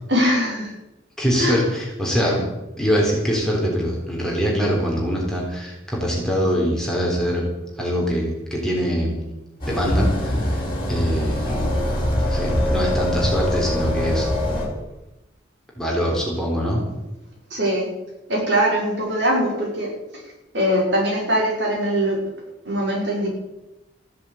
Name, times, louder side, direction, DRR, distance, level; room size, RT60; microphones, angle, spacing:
voice 1, 0.1-0.7 1.4-1.6 2.2-2.3 17.5-17.9 18.3-19.9 20.1-20.2 20.5-22.2 22.6-23.3, equal, 65° right, -2 dB, 6.1 m, -21 dB
voice 2, 1.2-2.4 2.8-7.5 7.8-9.2 9.7-11.5 12.3-14.3 15.8-16.8, equal, 5° left, -3 dB, 3.8 m, -23 dB
sound 1, 9.6-14.7, left 1 dB, 25° left, 5.9 m, -23 dB
14.5 x 11.0 x 8.5 m, 0.98 s
head